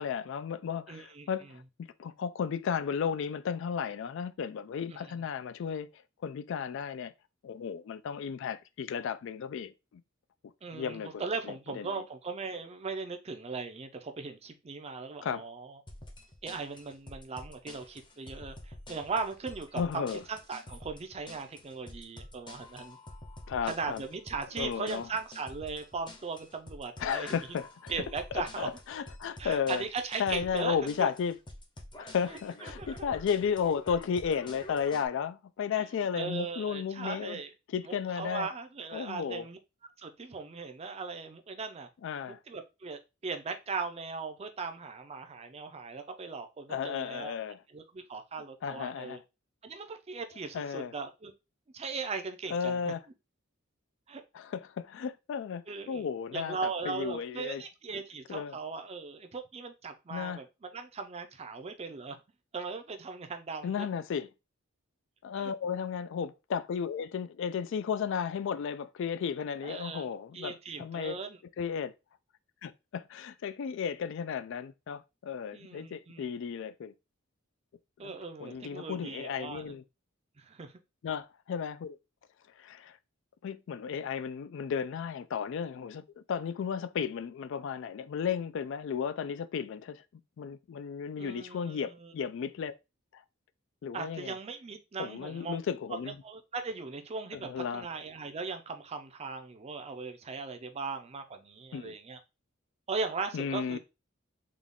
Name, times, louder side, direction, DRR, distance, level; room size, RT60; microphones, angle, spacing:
voice 1, 0.0-1.6 2.0-5.9 6.2-7.1 7.4-9.7 10.7-12.0 15.2-15.4 19.7-20.2 23.5-24.0 24.6-25.1 27.0-27.9 28.3-29.8 30.2-31.4 32.0-37.4 37.7-38.5 38.9-39.5 42.0-42.4 46.7-47.6 48.6-49.2 50.5-50.9 52.5-53.0 54.3-57.6 58.3-58.5 60.1-60.4 63.6-64.3 65.2-71.2 71.6-71.9 72.6-76.9 78.0-78.1 78.4-79.8 81.0-82.0 82.6-83.0 83.4-90.0 90.4-92.7 93.1-93.2 93.8-94.3 95.0-96.1 97.3-97.9 101.7-101.9 103.3-103.8, left 7 dB, 65° left, 0.3 m, -34 dB
voice 2, 0.9-1.3 4.9-5.1 10.6-15.8 16.4-23.0 23.6-27.4 27.9-28.7 29.4-31.1 32.6-32.9 35.8-35.9 36.1-37.5 37.9-39.6 40.0-41.9 42.3-47.4 47.7-49.2 49.6-51.3 51.7-52.9 54.1-54.2 55.7-56.1 56.3-62.2 62.5-63.9 65.4-65.5 69.6-71.4 75.5-76.3 78.0-79.6 80.4-80.7 91.2-92.1 93.9-95.6 95.9-102.2 102.9-103.8, right 4 dB, 30° right, 0.5 m, -38 dB
sound 1, 15.9-35.1, left 1 dB, 25° left, 0.7 m, -48 dB
3.8 x 2.3 x 3.5 m
head